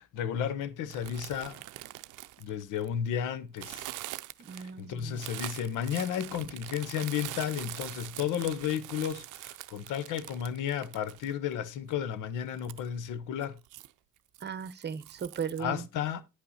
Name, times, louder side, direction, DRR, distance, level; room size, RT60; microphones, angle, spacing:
voice 1, 0.0-1.6 2.4-3.9 4.5-13.6 15.6-16.2, left 9 dB, 85° left, 0.9 m, -33 dB
sound 1, 0.9-3.1 3.6-11.5 11.9-12.0 12.5-12.9 13.4-13.9 14.3-15.6, right 17 dB, 90° right, 0.5 m, -43 dB
voice 2, 4.4-5.2 14.4-15.9, right 7 dB, 35° right, 0.9 m, -37 dB
9.8 x 5.7 x 4.1 m
cardioid pair, 90°, 30 cm